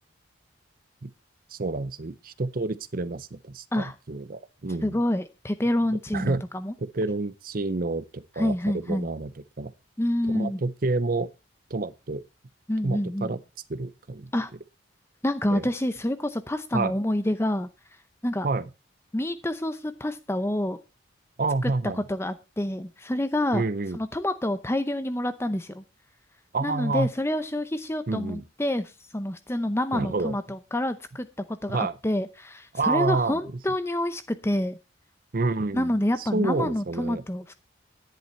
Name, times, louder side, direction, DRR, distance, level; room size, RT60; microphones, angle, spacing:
voice 1, 1.5-5.0 6.1-6.4 6.8-9.3 9.6-9.7 10.3-11.3 11.7-12.2 12.8-13.4 13.7-14.3 15.5-15.7 16.7-16.9 18.4-18.7 21.4-22.0 23.5-24.0 26.5-27.1 28.1-28.4 29.9-30.4 31.7-32.0 32.7-33.4 35.3-35.9 36.2-37.2, right 3 dB, 45° right, 0.6 m, -28 dB
voice 2, 4.8-6.7 8.4-9.1 10.0-10.6 12.7-13.3 14.3-14.5 15.2-17.7 18.2-18.5 19.1-20.8 21.6-23.6 23.9-25.8 26.6-34.8 35.7-37.5, left 1 dB, 15° left, 0.6 m, -28 dB
11.0 x 10.5 x 4.3 m
head